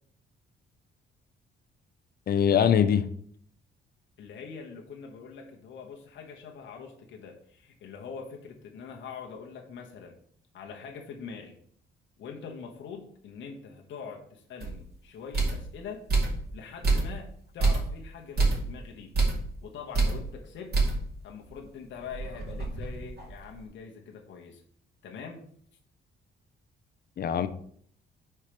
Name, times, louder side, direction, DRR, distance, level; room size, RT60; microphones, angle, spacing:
voice 1, 2.3-3.1 27.2-27.5, left 8 dB, 50° left, 12 dB, 0.6 m, -22 dB
voice 2, 4.2-10.1 10.5-11.6 12.2-16.0 16.5-19.1 19.6-20.7 21.2-24.6 25.0-25.4, left 6 dB, 70° left, 1 dB, 1.1 m, -43 dB
sound 1, 14.6-14.8 15.3-15.7 16.1-16.4 16.8-17.2 17.6-17.9 18.4-18.7 19.1-19.5 19.9-20.2 20.7-21.1 21.4-21.5 22.0-23.5, right 3 dB, 55° right, 2.2 m, -26 dB
4.8 x 4.4 x 5.0 m, 0.62 s
cardioid pair, 90°, 20 cm